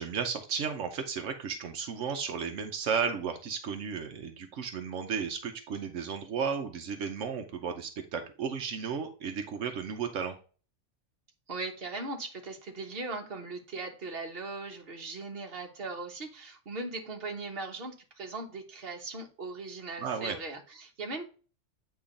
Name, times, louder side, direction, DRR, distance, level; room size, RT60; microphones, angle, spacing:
voice 1, 0.0-10.3 20.0-20.4, right 6 dB, 85° right, 5 dB, 1.1 m, -34 dB
voice 2, 11.5-21.2, right 3 dB, 55° right, 3 dB, 1.4 m, -39 dB
8.6 x 3.0 x 3.7 m, 0.38 s
omnidirectional pair, 1.2 m